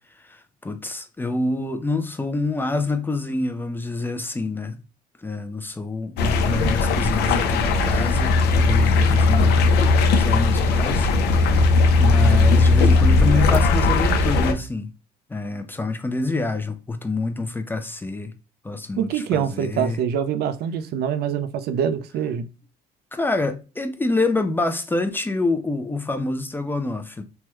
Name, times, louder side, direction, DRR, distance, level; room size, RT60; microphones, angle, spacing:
voice 1, 0.2-4.8 5.2-11.7 12.0-14.9 15.3-18.3 18.6-20.0 23.1-27.2, left 3 dB, 10° left, 0.4 m, -27 dB
sound 1, 6.2-14.5, left 3 dB, 75° left, 0.6 m, -18 dB
voice 2, 19.0-22.5, right 8 dB, 70° right, 0.5 m, -25 dB
3.4 x 2.1 x 3.0 m
cardioid pair, 110°, 17 cm